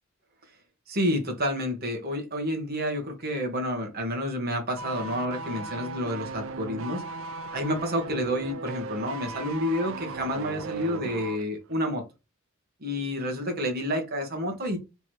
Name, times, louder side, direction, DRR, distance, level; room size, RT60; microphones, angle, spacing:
voice 1, 0.9-7.0 7.5-12.0 12.8-14.8, equal, 50° right, 3 dB, 1.4 m, -29 dB
sound 1, 4.8-11.5 11.7-11.9, right 3 dB, 65° right, 0.4 m, -37 dB
3.5 x 3.0 x 4.5 m, 0.26 s
head